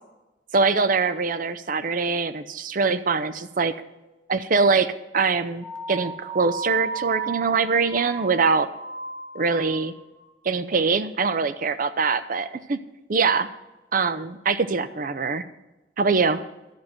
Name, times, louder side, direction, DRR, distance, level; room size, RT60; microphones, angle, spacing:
voice 1, 0.5-3.7 4.3-8.7 9.3-9.9 10.4-12.8 13.1-13.5 13.9-15.4 16.0-16.4, right 4 dB, 45° right, 13 dB, 0.6 m, -23 dB
sound 1, 5.6-10.2, right 5 dB, 75° right, 1.9 m, -35 dB
12.0 x 5.9 x 7.8 m, 1.0 s
head